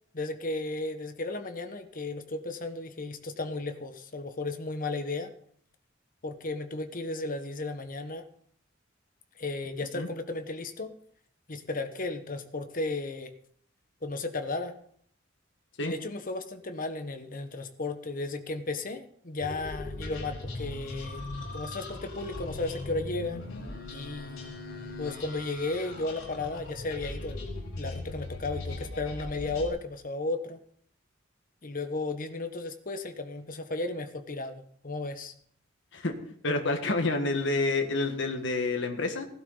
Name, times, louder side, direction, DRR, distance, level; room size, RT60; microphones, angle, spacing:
voice 1, 0.1-5.3 6.2-8.3 9.4-10.9 11.5-13.3 14.0-14.7 15.8-21.2 21.5-23.4 23.9-24.6 25.0-27.5 27.8-30.6 31.6-35.3, left 2 dB, 45° left, 8 dB, 1.3 m, -34 dB
sound 1, 19.4-29.7, left 2 dB, 85° left, 5.3 m, -39 dB
voice 2, 36.4-39.3, left 2 dB, 65° left, 5 dB, 1.6 m, -28 dB
16.0 x 12.0 x 4.0 m, 0.63 s
head